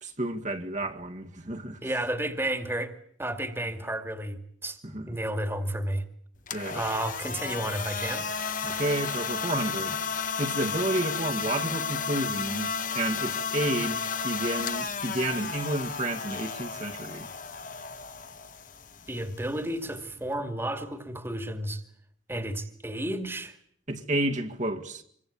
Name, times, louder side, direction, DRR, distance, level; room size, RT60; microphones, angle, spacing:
voice 1, 0.0-1.8 4.9-5.1 6.5-6.8 8.6-10.0 10.4-17.3 23.9-25.0, right 1 dB, 40° right, 2.1 m, -31 dB
voice 2, 1.8-2.9 3.2-4.8 5.1-6.0 6.7-8.3 19.1-21.8 22.3-23.6, right 1 dB, 10° right, 2.3 m, -32 dB
sound 1, 6.4-20.4, left 6 dB, 45° left, 1.5 m, -33 dB
27.5 x 24.0 x 8.7 m
head